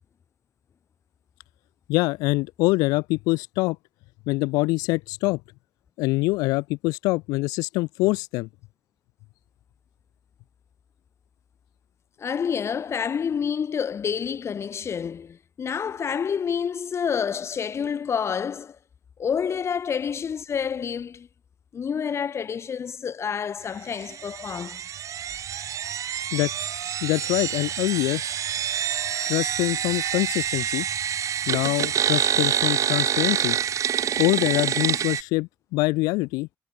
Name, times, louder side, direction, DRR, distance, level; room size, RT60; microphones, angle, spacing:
voice 1, 1.9-3.8 4.3-5.4 6.0-8.5 26.3-26.5 27.0-28.2 29.3-30.9 31.5-33.6 34.2-36.5, left 23 dB, 85° left, 0.4 m, -24 dB
voice 2, 12.2-18.8 19.2-21.3 21.7-24.8, left 7 dB, 45° left, 1.2 m, -28 dB
sound 1, 24.0-35.2, right 9 dB, 60° right, 2.1 m, -27 dB
supercardioid pair, 65°, 6 cm